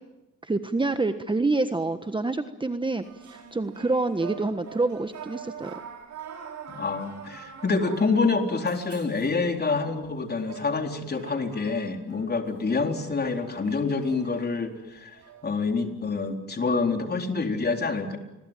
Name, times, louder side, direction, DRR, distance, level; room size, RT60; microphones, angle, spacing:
voice 1, 0.4-3.0 3.3-5.7, right 3 dB, 15° right, 9 dB, 1.3 m, -27 dB
sound 1, 3.0-15.7, right 8 dB, 70° right, 6.1 m, -45 dB
voice 2, 6.7-15.2 15.4-18.2, left 4 dB, 35° left, 4 dB, 4.1 m, -27 dB
29.5 x 22.0 x 9.1 m, 1.0 s
cardioid pair, 90°, 30 cm